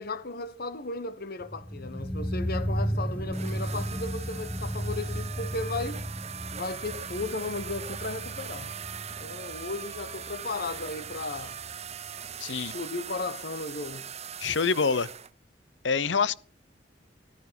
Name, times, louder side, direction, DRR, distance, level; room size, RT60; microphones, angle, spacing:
voice 1, 0.0-6.0 6.5-8.7 9.2-11.6 12.5-14.1, left 3 dB, 55° left, 1.4 m, -35 dB
sound 1, 1.4-12.4 12.7-12.8, equal, 10° left, 1.1 m, -35 dB
sound 2, 3.3-15.3, right 8 dB, 35° right, 0.8 m, -41 dB
voice 2, 12.4-12.7 14.4-15.1 15.8-16.3, left 5 dB, 75° left, 0.8 m, -25 dB
15.0 x 12.0 x 6.0 m
head